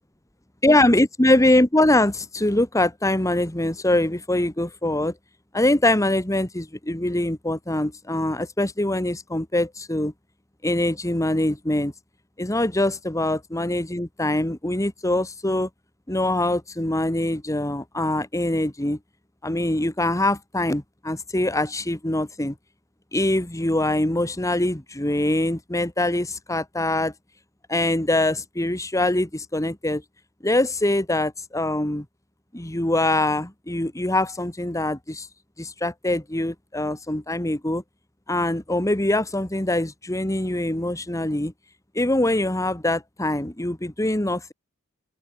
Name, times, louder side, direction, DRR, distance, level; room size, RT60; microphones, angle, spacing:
voice 1, 0.6-5.1 5.5-10.1 10.6-11.9 12.4-15.7 16.1-19.0 19.4-22.6 23.1-27.1 27.7-30.0 30.4-32.1 32.5-35.3 35.6-37.8 38.3-41.5 42.0-44.5, left 1 dB, 15° left, 1.9 m, -23 dB
open air
head